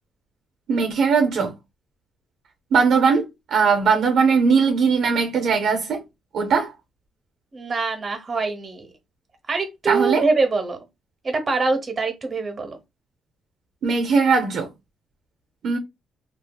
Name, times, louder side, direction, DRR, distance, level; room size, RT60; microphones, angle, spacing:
voice 1, 0.7-1.5 2.7-3.3 3.5-6.0 6.3-6.7 9.9-10.2 13.8-14.7 15.6-15.8, right 5 dB, 65° right, 0.5 m, -19 dB
voice 2, 7.5-8.9 9.5-10.8 11.2-12.8, right 3 dB, 35° right, 0.9 m, -24 dB
2.6 x 2.3 x 2.2 m
cardioid pair, 90°, 0 cm